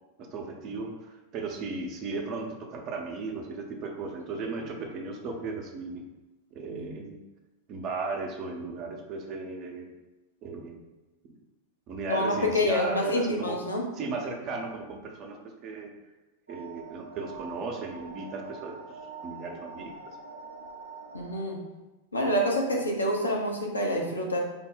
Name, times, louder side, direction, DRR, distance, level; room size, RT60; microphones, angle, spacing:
voice 1, 0.2-6.0 6.5-7.2 7.7-9.9 10.4-10.8 11.9-13.6 13.9-15.9 16.5-19.9, right 3 dB, 35° right, 2 dB, 0.6 m, -36 dB
voice 2, 12.1-13.8 21.1-21.6 22.1-24.4, left 1 dB, 80° left, -1 dB, 0.6 m, -27 dB
sound 1, 16.5-21.5, right 4 dB, 85° right, 0.7 m, -44 dB
3.4 x 2.1 x 3.9 m, 1.1 s
figure-of-eight pair, 90°, 0 cm